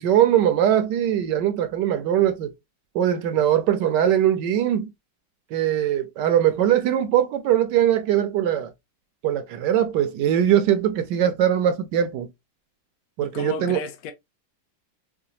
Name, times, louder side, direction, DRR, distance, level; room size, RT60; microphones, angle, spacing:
voice 1, 0.0-2.5 2.9-4.9 5.5-8.7 9.2-12.3 13.2-13.8, right 10 dB, 75° right, 1.1 m, -21 dB
voice 2, 13.2-14.1, left 7 dB, 70° left, 0.8 m, -33 dB
4.9 x 2.2 x 2.8 m
omnidirectional pair, 2.1 m